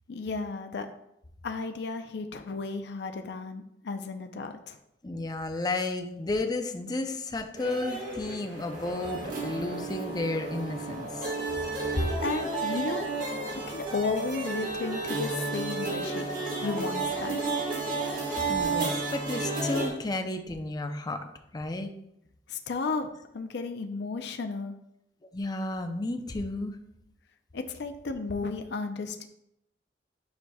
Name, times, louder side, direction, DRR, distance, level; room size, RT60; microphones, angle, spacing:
voice 1, 0.1-0.9 1.4-4.8 11.9-13.1 13.5-16.3 16.6-17.4 22.5-23.1 23.3-24.8 27.5-29.3, left 4 dB, 70° left, 6 dB, 0.5 m, -34 dB
voice 2, 5.0-11.3 12.0-12.1 18.5-21.3 21.5-21.9 25.3-26.8, left 2 dB, 25° left, 6 dB, 0.5 m, -32 dB
sound 1, 7.6-19.9, right 3 dB, 50° right, 1.6 m, -32 dB
9.5 x 4.7 x 2.3 m, 0.79 s
head